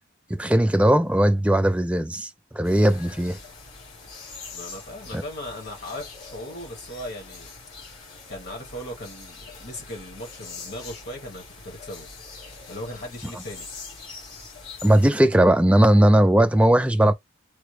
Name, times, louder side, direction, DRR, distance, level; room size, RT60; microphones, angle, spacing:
voice 1, 0.3-3.4 5.1-5.2 14.8-17.1, right 1 dB, 5° right, 0.3 m, -18 dB
sound 1, 2.6-15.1, left 4 dB, 80° left, 1.7 m, -43 dB
voice 2, 4.5-7.5 8.3-12.1 12.7-13.7, left 1 dB, 55° left, 1.4 m, -38 dB
3.5 x 2.1 x 3.2 m
head